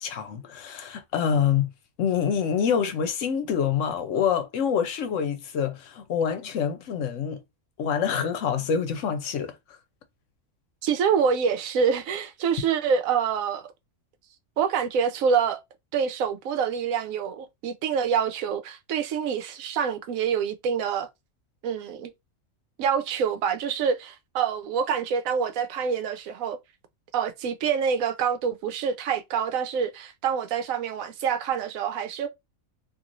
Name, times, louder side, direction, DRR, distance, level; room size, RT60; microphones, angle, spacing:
voice 1, 0.0-1.7 2.0-7.4 7.8-9.8, left 7 dB, 70° left, 0.9 m, -26 dB
voice 2, 10.8-13.7 14.6-15.6 15.9-21.1 21.6-22.1 22.8-26.6 27.1-32.3, right 7 dB, 80° right, 1.0 m, -26 dB
2.9 x 2.7 x 2.5 m
omnidirectional pair, 1.4 m